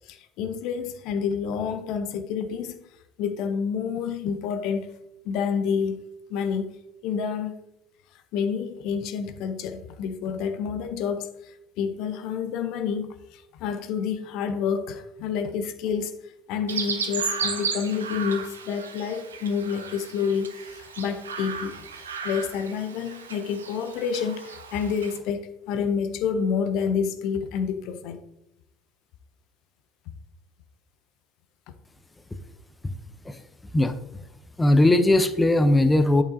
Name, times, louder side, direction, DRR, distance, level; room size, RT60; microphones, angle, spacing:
voice 1, 0.1-2.8 3.2-4.9 5.3-6.0 6.3-6.7 7.0-7.5 8.3-11.3 11.8-16.1 16.5-21.7 22.2-28.2, left 6 dB, 60° left, 0.5 m, -28 dB
Chirp tweet, 16.7-25.2, right 6 dB, 85° right, 0.6 m, -34 dB
voice 2, 34.6-36.2, left 1 dB, 15° left, 0.6 m, -19 dB
8.4 x 5.7 x 2.6 m
hypercardioid pair, 65°, 0 cm